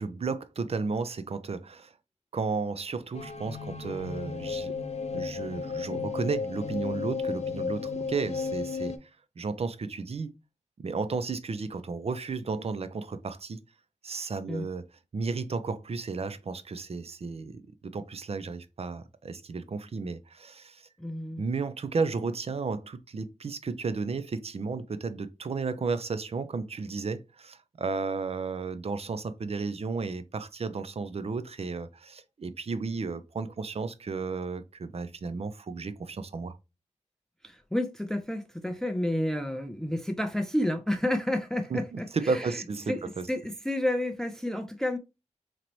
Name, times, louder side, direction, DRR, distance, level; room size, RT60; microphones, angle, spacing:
voice 1, 0.0-1.9 2.3-4.7 5.1-9.1 9.4-10.4 10.8-13.6 14.0-14.9 15.1-17.6 17.9-20.9 21.4-36.6 41.7-43.3, right 4 dB, 55° right, 0.5 m, -33 dB
sound 1, 3.1-9.0, left 5 dB, 65° left, 0.6 m, -34 dB
voice 2, 21.0-21.4 37.4-42.6 42.9-45.0, left 1 dB, 5° left, 0.4 m, -30 dB
3.9 x 3.0 x 3.0 m
wide cardioid pair, 105°, 12 cm